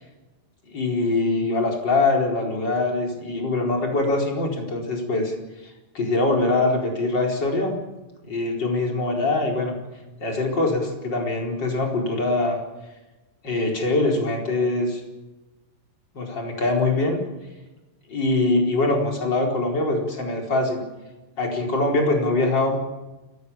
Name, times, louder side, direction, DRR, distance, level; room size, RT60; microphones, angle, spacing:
voice 1, 0.7-5.3 5.9-7.8 8.2-9.7 10.2-12.6 13.4-15.0 16.1-17.2 18.1-20.8 21.4-22.8, left 2 dB, 30° left, 1 dB, 4.9 m, -23 dB
29.5 x 16.0 x 7.2 m, 1.1 s
omnidirectional pair, 3.9 m